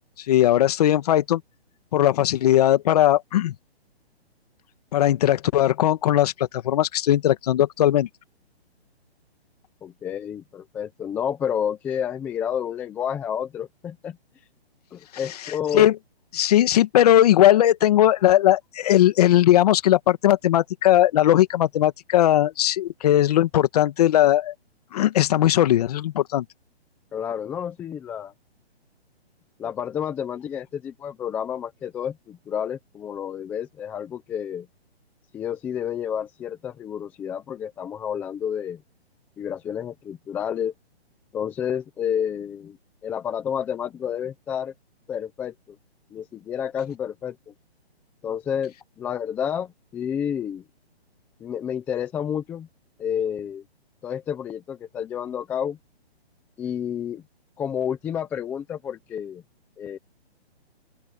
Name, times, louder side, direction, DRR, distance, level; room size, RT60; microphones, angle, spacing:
voice 1, 0.3-1.4 1.9-3.5 4.9-8.1 15.7-15.9 16.3-24.5 24.9-26.4, left 12 dB, 35° left, 1.9 m, -18 dB
voice 2, 9.8-14.2 14.9-15.9 27.1-28.3 29.6-34.7 35.3-38.8 39.4-40.7 41.3-42.8 43.0-44.7 45.1-45.5 46.1-47.5 48.2-50.6 51.4-52.7 53.0-53.6 54.0-55.8 56.6-57.2 57.6-59.4 59.8-60.0, left 8 dB, 5° left, 0.7 m, -30 dB
open air
hypercardioid pair, 160°, 32 cm